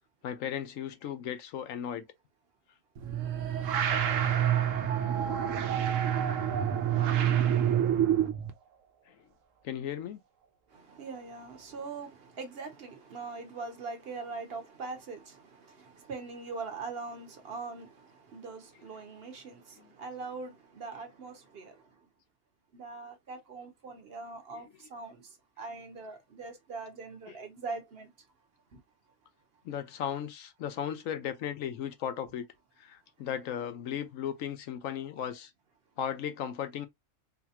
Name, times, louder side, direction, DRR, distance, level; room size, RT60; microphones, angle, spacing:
voice 1, 0.2-2.1 5.9-6.0 9.1-9.2 9.6-10.2 19.8-19.9 24.5-24.6 27.3-27.4 29.6-32.5 32.8-35.5 36.0-36.9, left 9 dB, 90° left, 1.1 m, -36 dB
sound 1, 3.0-8.5, right 9 dB, 80° right, 1.0 m, -27 dB
voice 2, 10.7-21.7 22.7-25.2 25.6-28.1 28.7-28.8, right 4 dB, 55° right, 1.0 m, -42 dB
4.0 x 2.2 x 2.8 m
omnidirectional pair, 1.3 m